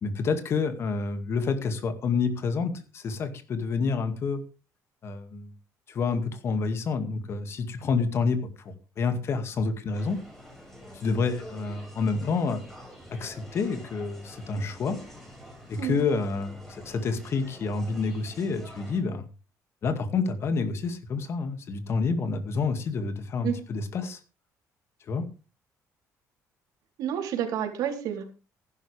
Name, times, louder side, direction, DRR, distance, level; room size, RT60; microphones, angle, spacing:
voice 1, 0.0-4.4 5.0-5.5 5.9-10.2 10.9-12.6 13.1-15.0 15.7-19.3 19.8-24.2 25.1-25.2, left 4 dB, 45° left, 8 dB, 2.2 m, -28 dB
sound 1, 9.9-19.0, equal, 5° left, 6.0 m, -47 dB
voice 2, 27.0-28.2, right 9 dB, 80° right, 3 dB, 3.7 m, -29 dB
15.0 x 11.5 x 3.5 m, 0.33 s
cardioid pair, 150°, 6 cm